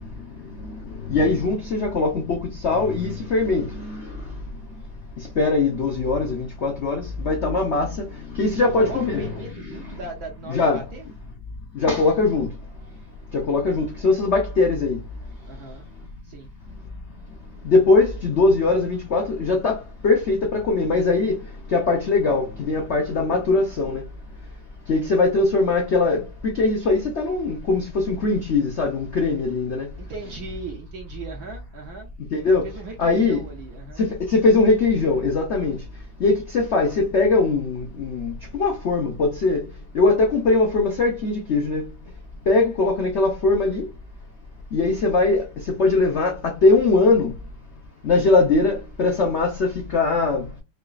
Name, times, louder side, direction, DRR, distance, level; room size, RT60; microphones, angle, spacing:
voice 1, 1.0-4.3 5.2-9.3 9.7-9.9 10.5-10.8 11.7-12.5 13.3-15.0 17.6-21.4 21.7-24.0 24.9-29.9 32.3-32.7 33.0-33.4 34.0-35.8 36.2-39.6 39.9-41.8 42.5-43.9 44.7-47.3 48.0-50.5, left 3 dB, 90° left, 0.6 m, -21 dB
voice 2, 8.5-11.0 15.5-15.9 16.2-16.5 30.0-32.1 32.6-34.1, right 3 dB, 65° right, 1.0 m, -37 dB
4.9 x 2.4 x 2.3 m
omnidirectional pair, 2.2 m